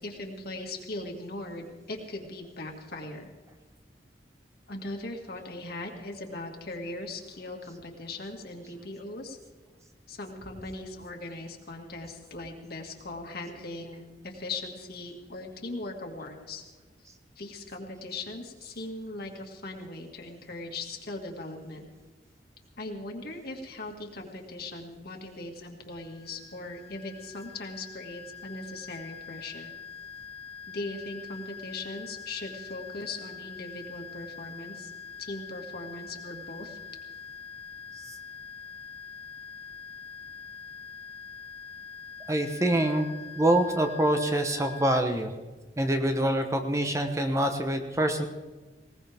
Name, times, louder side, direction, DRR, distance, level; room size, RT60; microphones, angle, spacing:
voice 1, 0.0-3.3 4.7-9.4 10.1-16.6 17.4-21.9 22.8-29.7 30.7-34.9 35.2-36.8, left 2 dB, 60° left, 2 dB, 2.1 m, -39 dB
sound 1, 25.9-45.0, left 6 dB, 35° left, 1.0 m, -44 dB
voice 2, 42.3-43.1 43.4-45.3 45.8-48.2, right 1 dB, 15° right, 5 dB, 1.1 m, -25 dB
20.0 x 18.5 x 3.6 m, 1.2 s
head